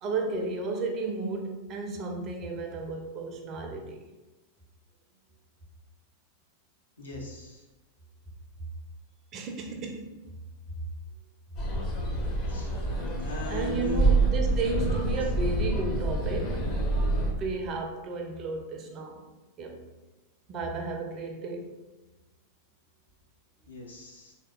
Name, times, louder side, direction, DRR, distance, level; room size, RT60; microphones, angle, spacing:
voice 1, 0.0-4.0 9.3-10.1 13.5-16.9 17.3-19.2 19.6-19.8 20.5-21.7, right 3 dB, 35° right, 2 dB, 0.5 m, -33 dB
voice 2, 7.0-7.6 12.5-12.7 13.2-14.1 15.1-15.2 23.7-24.3, left 3 dB, 75° left, -3 dB, 0.7 m, -39 dB
sound 1, 11.6-17.3, right 2 dB, 35° left, 0.7 m, -27 dB
3.2 x 2.8 x 2.3 m, 1.1 s
figure-of-eight pair, 90°, 0 cm